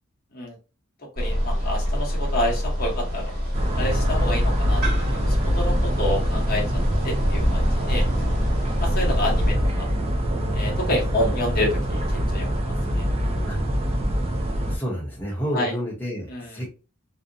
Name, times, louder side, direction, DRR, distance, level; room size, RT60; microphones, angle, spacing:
voice 1, 1.2-3.3 3.7-4.8 5.2-6.6 7.0-7.6 7.9-8.0 8.8-9.9 10.5-12.5 13.0-13.1 15.5-15.7 16.3-16.5, left 1 dB, 45° left, -2 dB, 0.8 m, -28 dB
sound 1, 1.2-9.5, equal, 45° right, 1.4 m, -26 dB
sound 2, 3.5-14.8, equal, 25° right, 0.4 m, -24 dB
voice 2, 14.5-16.7, equal, 10° left, -4 dB, 0.7 m, -30 dB
2.6 x 2.0 x 2.4 m, 0.31 s
head